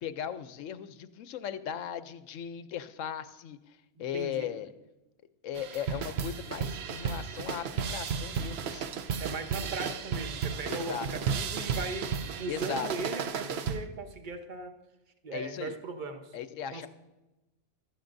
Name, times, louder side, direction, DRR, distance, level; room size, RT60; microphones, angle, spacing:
voice 1, 0.0-4.7 5.4-8.9 10.7-11.1 12.5-12.9 15.3-15.7 16.3-16.9, left 9 dB, 70° left, 12 dB, 0.9 m, -37 dB
voice 2, 4.0-4.5 9.2-14.8 15.2-16.4 16.7-16.9, right 3 dB, 40° right, 6 dB, 1.0 m, -38 dB
sound 1, 5.5-13.9, right 6 dB, 60° right, 0.7 m, -34 dB
15.5 x 13.0 x 2.6 m, 1.0 s
omnidirectional pair, 1.5 m